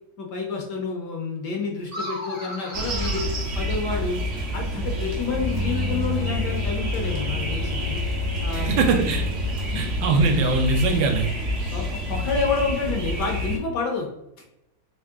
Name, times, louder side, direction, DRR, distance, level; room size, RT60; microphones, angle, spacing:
voice 1, 0.2-4.2 4.5-8.0 8.4-8.8 11.7-14.1, left 4 dB, 65° left, 1 dB, 1.2 m, -29 dB
sound 1, 1.8-4.3, equal, 15° left, 0.6 m, -37 dB
sound 2, 2.7-13.6, equal, 60° right, 0.6 m, -28 dB
Bowed string instrument, 5.3-10.2, left 3 dB, 85° left, 1.5 m, -32 dB
voice 2, 8.5-9.2 9.7-11.3, right 3 dB, 75° right, 4 dB, 1.3 m, -21 dB
3.7 x 3.1 x 3.5 m, 0.87 s
omnidirectional pair, 2.2 m